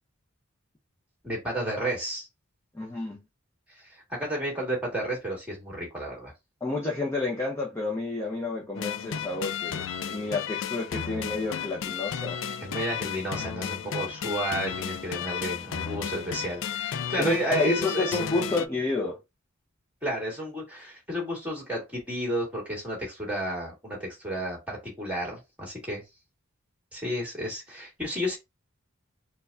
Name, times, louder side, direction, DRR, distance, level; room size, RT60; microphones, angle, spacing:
voice 1, 1.2-2.3 3.8-6.3 12.6-18.4 20.0-26.0 26.9-28.4, right 1 dB, 5° right, 1.9 m, -32 dB
voice 2, 2.7-3.2 6.6-12.4 14.0-14.1 17.2-19.2, left 3 dB, 10° left, 0.6 m, -30 dB
sound 1, 8.7-18.7, left 8 dB, 65° left, 0.3 m, -33 dB
4.4 x 2.3 x 2.6 m
head